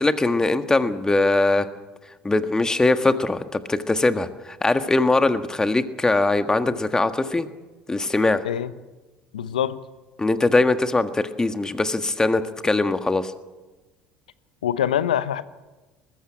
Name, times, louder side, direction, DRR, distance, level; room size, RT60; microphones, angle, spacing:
voice 1, 0.0-1.7 2.2-7.5 7.9-8.4 10.2-13.3, left 2 dB, 15° left, 1.6 m, -21 dB
voice 2, 9.3-9.8 14.6-15.4, left 10 dB, 85° left, 0.8 m, -24 dB
20.5 x 15.0 x 9.1 m
hypercardioid pair, 70°, 4 cm